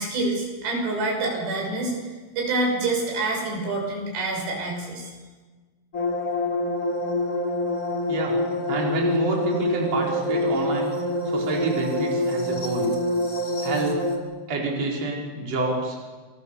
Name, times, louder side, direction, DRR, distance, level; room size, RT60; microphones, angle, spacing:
voice 1, 0.0-5.1, right 2 dB, 85° right, 0 dB, 8.5 m, -27 dB
sound 1, 5.9-14.2, left 1 dB, 25° left, 3.3 m, -26 dB
voice 2, 8.7-10.9 11.3-12.9 13.6-14.0 14.5-16.0, right 2 dB, 40° right, -2 dB, 5.4 m, -27 dB
28.0 x 23.5 x 7.1 m, 1.3 s
omnidirectional pair, 4.8 m